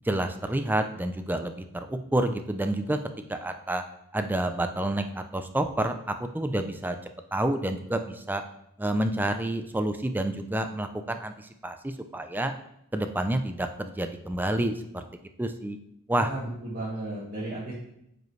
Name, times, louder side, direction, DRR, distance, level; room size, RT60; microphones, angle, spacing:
voice 1, 0.0-3.0 3.3-3.8 4.1-7.0 7.3-8.4 8.8-12.5 12.9-15.0 15.4-15.8 16.1-16.3, right 1 dB, 10° right, 8 dB, 0.4 m, -29 dB
voice 2, 16.1-17.7, right 2 dB, 45° right, -8 dB, 1.8 m, -34 dB
9.1 x 5.1 x 3.2 m, 0.79 s
head